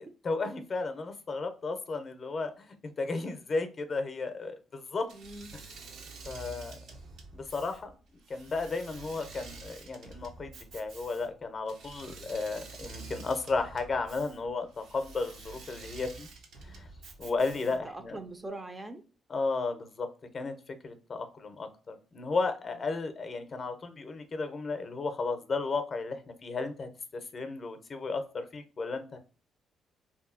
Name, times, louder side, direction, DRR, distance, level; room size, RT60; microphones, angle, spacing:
voice 1, 0.0-5.1 5.5-5.6 6.3-6.8 7.3-7.9 8.3-16.3 16.6-16.9 17.2-18.2 19.3-20.1 20.3-29.2, left 3 dB, 40° left, 0.5 m, -34 dB
voice 2, 5.1-5.5 17.6-19.0, right 2 dB, 25° right, 0.4 m, -43 dB
Engine / Mechanisms, 5.1-18.0, right 3 dB, 80° right, 0.6 m, -48 dB
2.7 x 2.6 x 2.4 m
cardioid pair, 90°, 0 cm